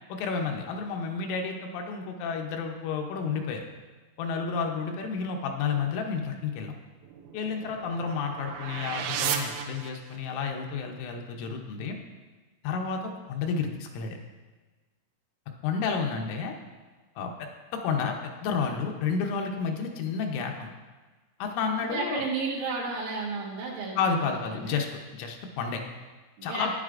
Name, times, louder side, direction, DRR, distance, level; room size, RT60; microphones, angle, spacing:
voice 1, 0.1-3.7 4.2-6.7 7.3-12.0 12.6-14.2 15.6-16.6 17.2-20.7 21.4-22.3 23.9-25.8 26.4-26.7, left 5 dB, 80° left, 3 dB, 3.2 m, -31 dB
sound 1, 7.0-10.4, right 7 dB, 90° right, 3.3 m, -34 dB
voice 2, 21.8-24.8 26.4-26.7, right 4 dB, 75° right, -4 dB, 3.5 m, -33 dB
11.0 x 9.9 x 2.5 m, 1.3 s
omnidirectional pair, 5.9 m